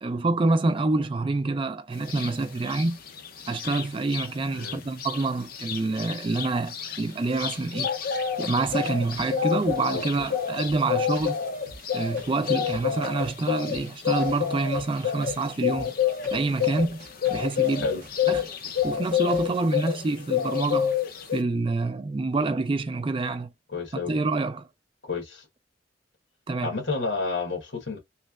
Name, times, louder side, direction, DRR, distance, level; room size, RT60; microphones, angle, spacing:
voice 1, 0.0-3.0 3.5-7.9 8.4-11.4 11.9-15.9 16.3-17.0 17.3-17.9 18.3-18.5 18.8-21.0 21.3-23.5 24.1-24.7 26.5-26.7, right 3 dB, 30° right, 0.3 m, -27 dB
sound 1, 2.1-2.3 2.7-4.3 4.6-4.7 5.0-20.0 20.3-21.4, left 8 dB, 50° left, 0.5 m, -28 dB
voice 2, 4.5-4.8 9.9-10.0 17.8-18.0 23.7-24.1 25.0-25.5 26.6-28.0, left 3 dB, 70° left, 1.2 m, -30 dB
sound 2, 7.1-19.6, right 3 dB, 50° right, 0.7 m, -49 dB
3.1 x 3.1 x 2.3 m
head